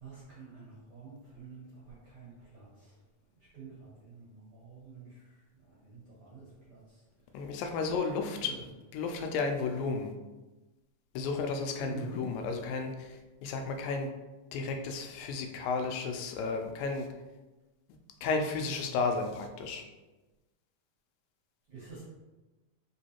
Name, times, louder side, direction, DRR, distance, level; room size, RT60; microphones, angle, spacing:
voice 1, 0.0-2.9 3.5-5.2 5.6-6.8 8.4-8.5 11.8-12.2 21.7-22.0, right 4 dB, 55° right, -8 dB, 1.6 m, -47 dB
voice 2, 7.3-10.1 11.2-14.1 14.5-17.1 18.2-19.8, left 4 dB, 85° left, 4 dB, 2.3 m, -33 dB
5.2 x 3.1 x 2.8 m, 1.1 s
omnidirectional pair, 3.9 m